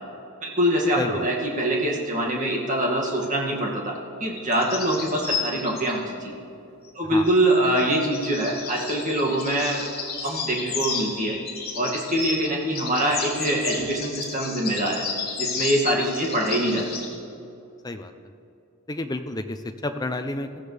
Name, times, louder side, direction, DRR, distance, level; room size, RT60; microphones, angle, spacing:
voice 1, 0.4-6.3 6.9-9.8 10.2-11.4 11.8-15.1 15.4-16.8, right 1 dB, 35° right, -2 dB, 2.3 m, -24 dB
sound 1, 4.4-5.9 7.3-12.5 12.7-17.1, left 5 dB, 45° left, 3.5 m, -32 dB
voice 2, 18.9-20.6, left 2 dB, 15° left, 8 dB, 0.6 m, -30 dB
20.0 x 15.0 x 3.4 m, 2.7 s
head